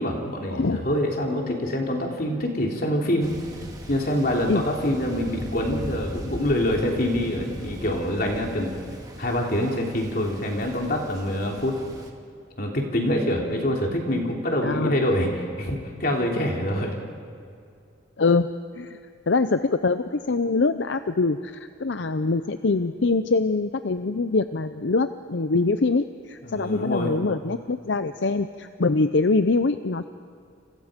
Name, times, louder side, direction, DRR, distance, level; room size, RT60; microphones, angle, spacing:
voice 1, 0.0-3.3 3.9-8.7 9.2-11.8 12.6-16.9 26.4-27.1, left 1 dB, 50° left, 0 dB, 3.4 m, -25 dB
Thunder, 3.2-12.1, equal, 20° right, 2.3 m, -38 dB
voice 2, 14.6-14.9 18.2-18.5 18.7-19.0 19.3-30.0, left 3 dB, 70° left, 10 dB, 0.7 m, -24 dB
29.0 x 27.5 x 5.2 m, 2.4 s
head